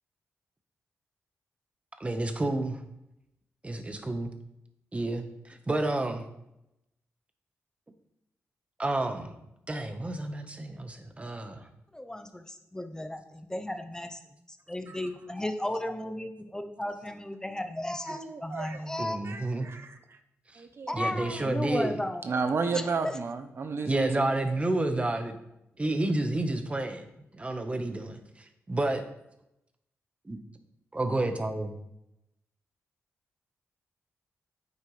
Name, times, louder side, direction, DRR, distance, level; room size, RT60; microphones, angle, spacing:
voice 1, 2.0-2.8 3.6-4.3 4.9-6.2 8.8-9.3 9.7-11.6 19.0-19.7 20.5-20.6 20.9-22.0 23.9-25.4 25.8-27.1 27.3-29.0 30.2-30.4 30.9-31.8, right 2 dB, 25° right, 6 dB, 1.3 m, -30 dB
voice 2, 11.9-14.2 14.5-19.2 20.9-22.2 22.6-23.2, left 1 dB, 15° left, 7 dB, 0.8 m, -34 dB
voice 3, 18.1-18.8 19.2-20.0 20.6-21.0 22.2-24.3, right 4 dB, 55° right, 8 dB, 0.8 m, -32 dB
9.5 x 7.9 x 3.4 m, 0.85 s
cardioid pair, 75°, 5 cm